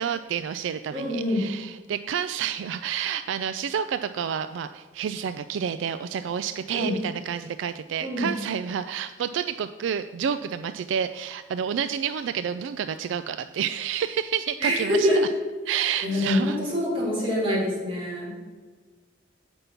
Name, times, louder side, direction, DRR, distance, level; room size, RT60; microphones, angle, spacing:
voice 1, 0.0-15.1 15.7-16.6, right 8 dB, 75° right, 11 dB, 0.3 m, -29 dB
voice 2, 0.9-1.4 6.7-7.0 8.0-8.3 14.6-15.2 16.0-18.3, equal, 30° right, -6 dB, 3.0 m, -25 dB
8.1 x 5.3 x 5.7 m, 1.4 s
head